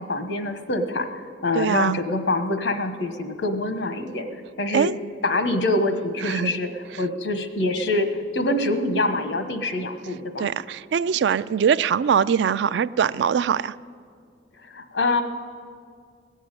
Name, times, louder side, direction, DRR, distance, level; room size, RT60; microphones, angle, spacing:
voice 1, 0.0-4.3 4.6-4.9 5.2-6.7 7.0-10.5 14.7-15.2, left 2 dB, 90° left, 1.2 m, -25 dB
voice 2, 1.5-2.0 4.7-5.0 6.2-6.6 6.9-7.0 10.4-13.7, right 7 dB, 75° right, 0.3 m, -22 dB
18.0 x 7.3 x 8.9 m
head